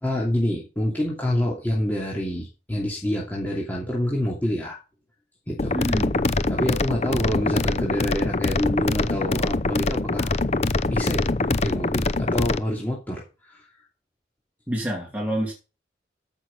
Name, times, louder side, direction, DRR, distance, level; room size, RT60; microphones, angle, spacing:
voice 1, 0.0-4.8 5.5-5.8 6.5-10.4 10.9-13.6, left 1 dB, 10° left, -3 dB, 2.7 m, -27 dB
sound 1, 5.6-12.6, left 3 dB, 35° left, 0.6 m, -24 dB
voice 2, 5.7-6.1 14.7-15.5, right 1 dB, 10° right, -1 dB, 2.6 m, -27 dB
14.5 x 6.2 x 5.3 m, 0.31 s
head